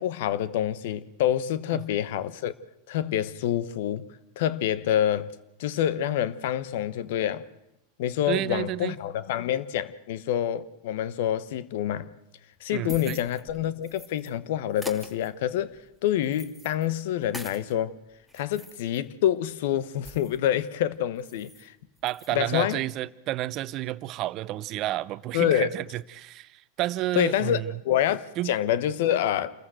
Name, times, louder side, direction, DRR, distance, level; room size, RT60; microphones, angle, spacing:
voice 1, 0.0-2.5 2.9-4.1 4.4-5.3 5.6-7.5 8.0-12.1 12.6-15.8 16.0-18.0 18.3-21.7 22.3-22.8 25.3-25.7 27.1-29.5, left 11 dB, 65° left, 1.1 m, -27 dB
voice 2, 8.3-9.0 12.7-13.2 22.0-27.7 28.4-28.5, right 15 dB, 45° right, 0.7 m, -31 dB
sound 1, 12.5-14.3 14.7-17.7 18.1-20.5 20.8-20.9 21.2-21.7 22.0-22.4, equal, 5° left, 2.7 m, -45 dB
27.5 x 14.5 x 7.9 m
hypercardioid pair, 100°, 0 cm